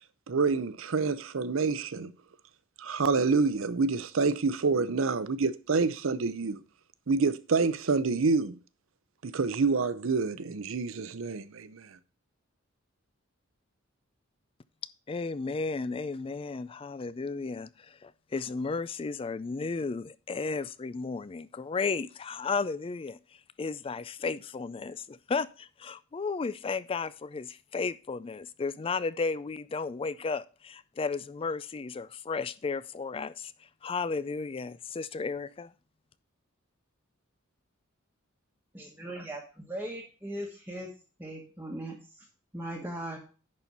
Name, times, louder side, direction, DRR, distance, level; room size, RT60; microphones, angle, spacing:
voice 1, 0.3-2.1 2.8-6.6 7.1-8.6 9.2-12.0, right 4 dB, 75° right, 0.6 m, -27 dB
voice 2, 15.1-23.2 23.6-33.5 33.8-35.7, left 4 dB, 25° left, 0.3 m, -34 dB
voice 3, 38.7-40.9 41.2-42.2 42.5-43.2, right 1 dB, 10° right, 1.2 m, -39 dB
10.5 x 4.3 x 5.3 m
head